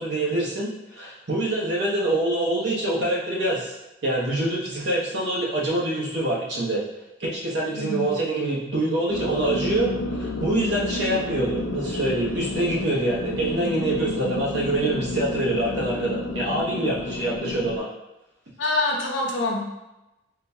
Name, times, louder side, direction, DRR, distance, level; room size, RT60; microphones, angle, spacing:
voice 1, 0.0-3.7 4.0-6.8 7.2-17.9, right 1 dB, 65° right, -5 dB, 1.0 m, -25 dB
voice 2, 7.8-8.1 18.6-19.7, left 2 dB, 70° left, -2 dB, 0.8 m, -25 dB
sound 1, 9.1-17.8, left 2 dB, 90° left, 0.4 m, -30 dB
3.8 x 2.3 x 2.7 m, 0.97 s
head